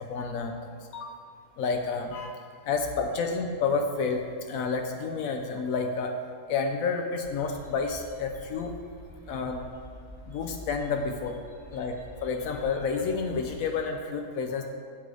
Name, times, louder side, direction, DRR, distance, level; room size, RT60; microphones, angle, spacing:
voice 1, 0.1-0.5 0.9-1.1 1.6-2.4 2.7-6.1 6.5-8.7 9.3-9.6 10.3-11.3 11.7-14.6, left 4 dB, 85° left, 4 dB, 1.1 m, -30 dB
sound 1, 7.2-13.8, left 1 dB, 20° left, 1.5 m, -48 dB
8.2 x 6.1 x 4.8 m, 2.1 s
omnidirectional pair, 1.4 m